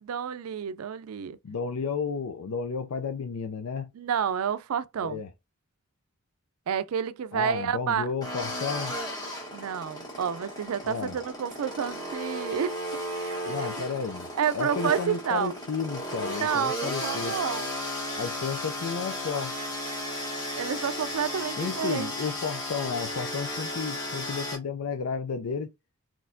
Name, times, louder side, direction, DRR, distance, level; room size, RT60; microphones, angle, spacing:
voice 1, 0.0-1.4 4.0-5.2 6.7-8.1 9.5-12.8 13.1-13.5 14.4-15.5 16.4-17.7 20.6-22.1, right 7 dB, 85° right, 0.4 m, -29 dB
voice 2, 1.4-3.9 5.0-5.3 7.3-9.0 10.8-11.2 13.5-17.4 18.2-19.6 21.6-25.7, left 5 dB, 85° left, 0.5 m, -32 dB
sound 1, 8.2-24.6, left 1 dB, 20° left, 1.2 m, -34 dB
4.1 x 3.1 x 2.6 m
head